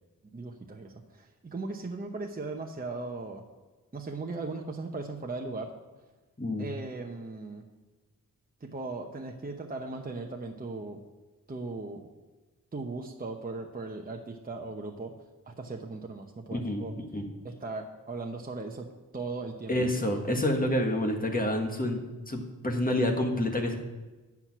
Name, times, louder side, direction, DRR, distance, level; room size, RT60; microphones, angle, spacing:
voice 1, 0.3-3.4 3.9-5.7 6.6-7.6 8.6-11.0 11.5-12.1 12.7-15.1 15.5-16.9 17.4-18.9 19.1-19.7, right 3 dB, 25° right, 2 dB, 0.8 m, -38 dB
voice 2, 16.5-17.2 19.7-23.8, left 1 dB, 25° left, 3 dB, 1.5 m, -28 dB
9.7 x 6.0 x 6.0 m, 1.2 s
wide cardioid pair, 85°, 34 cm